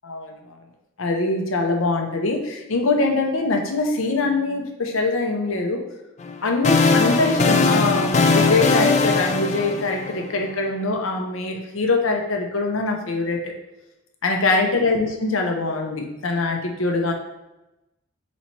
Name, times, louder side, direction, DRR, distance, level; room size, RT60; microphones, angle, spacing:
voice 1, 0.0-0.6 1.0-5.8 6.4-13.5 14.2-17.1, left 3 dB, 80° left, 2 dB, 0.7 m, -23 dB
sound 1, 6.2-10.4, left 4 dB, 35° left, 0.3 m, -20 dB
4.0 x 3.0 x 4.3 m, 0.97 s
head